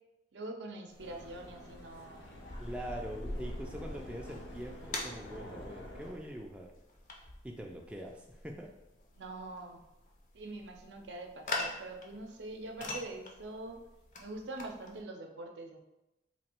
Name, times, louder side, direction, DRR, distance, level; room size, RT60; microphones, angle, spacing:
voice 1, 0.3-2.3 9.1-9.8 10.3-13.8 14.2-15.8, right 2 dB, 85° right, 3 dB, 0.6 m, -44 dB
sound 1, 0.9-15.0, left 2 dB, 45° left, 0.5 m, -44 dB
sound 2, 1.0-6.1, left 1 dB, 85° left, 0.8 m, -49 dB
voice 2, 2.6-6.7 7.4-8.7, equal, 5° right, 0 dB, 0.3 m, -43 dB
3.0 x 2.6 x 4.3 m, 0.93 s
head